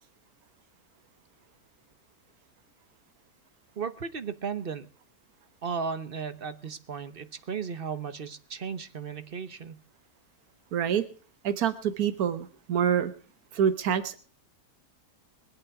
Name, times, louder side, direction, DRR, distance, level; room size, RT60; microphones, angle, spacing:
voice 1, 3.8-4.9 5.6-9.8, right 6 dB, 40° right, 1.1 m, -35 dB
voice 2, 10.7-11.0 11.4-13.1 13.5-14.2, right 8 dB, 80° right, 1.5 m, -26 dB
22.5 x 8.4 x 4.8 m
omnidirectional pair, 1.5 m